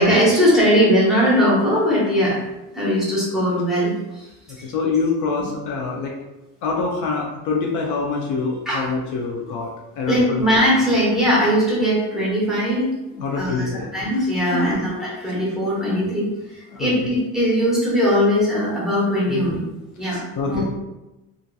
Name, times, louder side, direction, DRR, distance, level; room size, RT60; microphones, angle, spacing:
voice 1, 0.0-2.4 2.7-4.3 8.7-8.8 10.1-12.9 13.4-16.3 16.8-19.6 20.0-20.6, equal, ahead, -8 dB, 0.8 m, -19 dB
voice 2, 4.6-6.1 6.6-10.4 13.2-13.9 14.5-14.9 16.7-17.1 19.3-19.5 20.0-20.6, left 4 dB, 55° left, -1 dB, 0.5 m, -25 dB
2.7 x 2.5 x 2.2 m, 1.0 s
cardioid pair, 150°, 37 cm